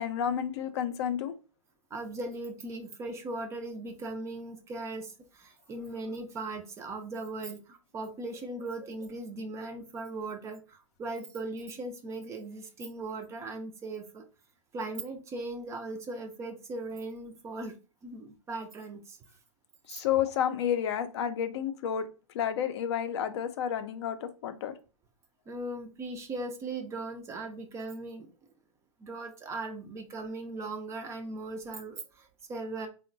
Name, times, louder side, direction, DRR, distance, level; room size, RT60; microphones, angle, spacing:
voice 1, 0.0-1.3 19.9-24.7, left 9 dB, 55° left, 0.4 m, -31 dB
voice 2, 1.9-14.2 14.7-17.7 18.0-19.2 25.5-28.3 29.0-32.9, right 2 dB, 15° right, 0.3 m, -38 dB
3.6 x 2.1 x 2.5 m
hypercardioid pair, 115°, 17 cm